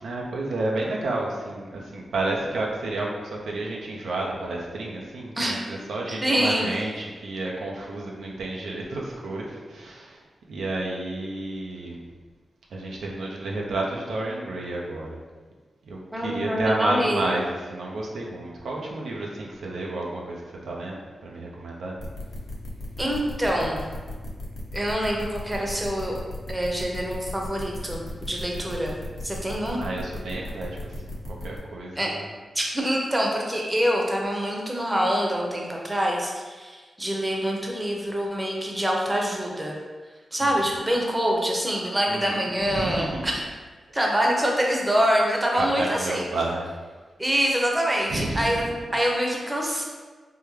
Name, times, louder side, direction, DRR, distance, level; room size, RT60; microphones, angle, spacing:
voice 1, 0.0-10.2 10.5-12.0 12.7-15.2 15.8-21.9 29.7-31.1 31.4-32.2 40.4-40.7 42.1-43.2 45.6-46.6 48.1-48.5 48.8-48.9, right 2 dB, 85° right, -2 dB, 0.4 m, -31 dB
voice 2, 6.1-6.7 16.1-17.2 23.0-23.8 24.7-26.1 26.5-29.0 29.2-29.8 32.0-32.1 32.5-39.7 40.3-43.4 43.9-46.3 47.2-48.6 48.9-49.8, equal, 20° right, -1 dB, 0.7 m, -25 dB
sound 1, 22.0-31.6, left 1 dB, 50° left, 1.0 m, -36 dB
3.5 x 2.2 x 3.1 m, 1.4 s
cardioid pair, 50°, 0 cm